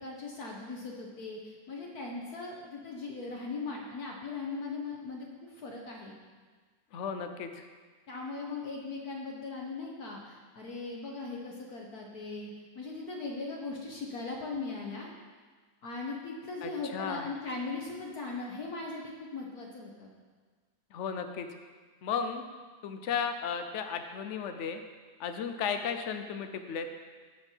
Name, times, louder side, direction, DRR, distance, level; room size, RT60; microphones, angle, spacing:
voice 1, 0.0-6.1 8.1-12.5 12.7-15.1 15.8-20.1, left 3 dB, 60° left, -1 dB, 1.4 m, -39 dB
voice 2, 6.9-7.6 16.6-17.3 20.9-21.5 22.0-22.4 22.8-24.8 25.2-26.9, left 6 dB, 75° left, 7 dB, 0.6 m, -34 dB
14.5 x 5.2 x 4.5 m, 1.5 s
omnidirectional pair, 2.0 m